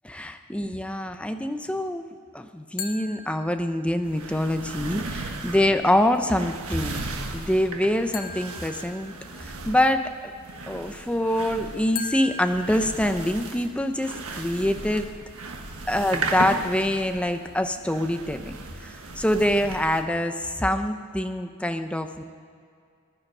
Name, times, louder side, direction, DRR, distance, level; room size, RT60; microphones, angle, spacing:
voice 1, 0.1-2.1 2.3-7.0 7.3-9.1 9.4-10.0 10.7-15.1 15.9-18.6 18.8-22.2, left 1 dB, 5° left, 7 dB, 0.7 m, -25 dB
sound 1, 2.8-4.1 8.1-9.7 12.0-13.7, left 5 dB, 45° left, 1.1 m, -39 dB
sound 2, 4.0-20.0, right 3 dB, 70° right, 1.5 m, -36 dB
19.5 x 11.0 x 5.5 m, 2.3 s
head